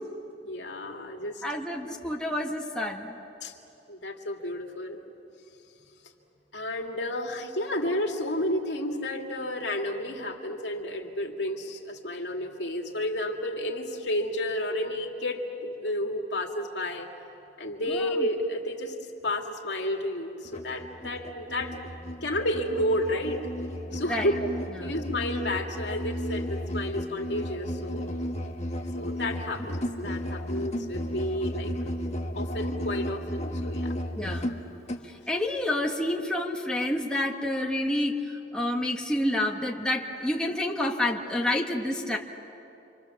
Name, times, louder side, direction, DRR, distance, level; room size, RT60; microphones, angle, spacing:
voice 1, 0.4-1.4 3.4-3.5 3.9-5.0 6.5-17.1 17.6-18.9 19.2-21.7 22.2-23.4 23.9-24.5 24.8-28.2 28.9-31.7 32.4-33.9, left 1 dB, 75° left, 1 dB, 2.5 m, -31 dB
voice 2, 1.4-3.2 17.9-18.3 24.1-24.3 24.8-24.9 34.2-34.6 35.0-42.2, left 1 dB, 5° left, -1 dB, 1.5 m, -29 dB
Musical instrument, 20.4-35.1, equal, 35° left, 1.4 m, -34 dB
29.0 x 25.5 x 7.1 m, 2.8 s
head